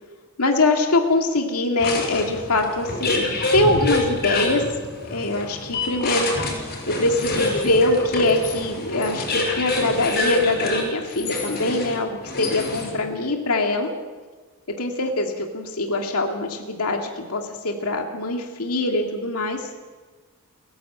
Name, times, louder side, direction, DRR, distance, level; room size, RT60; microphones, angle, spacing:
voice 1, 0.4-4.6 5.1-6.3 6.9-13.9 14.8-19.7, left 2 dB, 85° left, 2 dB, 2.1 m, -23 dB
sound 1, 1.8-13.1, left 2 dB, 45° left, 6.1 m, -27 dB
29.5 x 11.0 x 8.1 m, 1.4 s
head